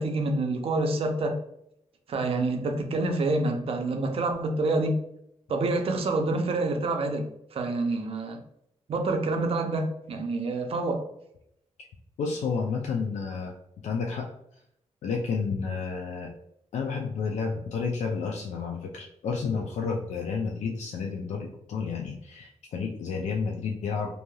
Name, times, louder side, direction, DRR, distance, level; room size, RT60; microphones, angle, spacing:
voice 1, 0.0-1.4 2.1-5.0 5.5-8.4 8.9-11.1, right 2 dB, 55° right, 4 dB, 0.5 m, -27 dB
voice 2, 12.2-13.5 13.8-14.3 15.0-16.3 16.7-24.1, left 5 dB, 80° left, 0 dB, 0.4 m, -31 dB
3.0 x 2.7 x 2.2 m, 0.75 s
wide cardioid pair, 160°, 12 cm